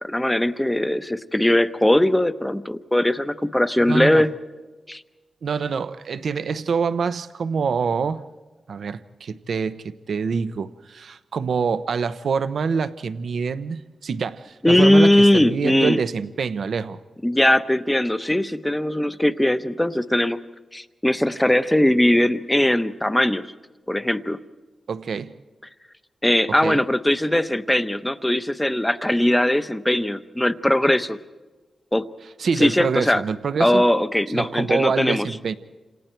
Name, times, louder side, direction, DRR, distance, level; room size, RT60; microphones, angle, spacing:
voice 1, 0.0-4.3 4.9-5.0 14.6-16.0 17.2-20.4 20.7-23.4 23.9-24.4 26.2-31.2 31.9-32.1 32.6-33.2 33.6-35.3, left 1 dB, 10° left, 12 dB, 0.9 m, -20 dB
voice 2, 3.9-4.3 5.4-8.2 8.7-17.0 24.9-25.3 26.5-26.8 32.4-33.9 34.3-35.6, right 5 dB, 70° right, 13 dB, 0.8 m, -26 dB
28.5 x 27.5 x 4.5 m, 1.3 s
wide cardioid pair, 110°, 0 cm